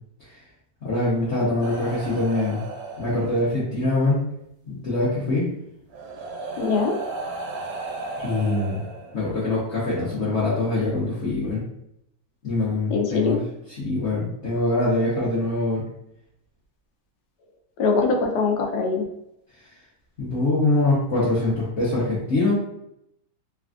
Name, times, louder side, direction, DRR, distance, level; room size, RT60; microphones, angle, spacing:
voice 1, 0.8-2.6 3.0-4.2 4.7-5.5 8.2-8.8 9.1-11.6 12.4-13.4 13.8-15.8 20.2-22.5, left 2 dB, 55° left, -8 dB, 0.8 m, -23 dB
sound 1, 1.6-3.8 5.1-5.2 5.9-9.5 10.6-10.8, right 3 dB, 70° right, 0.9 m, -35 dB
voice 2, 6.6-6.9 12.9-13.4 17.8-19.1, left 4 dB, 75° left, 2 dB, 1.1 m, -22 dB
3.2 x 2.3 x 2.4 m, 0.79 s
omnidirectional pair, 1.9 m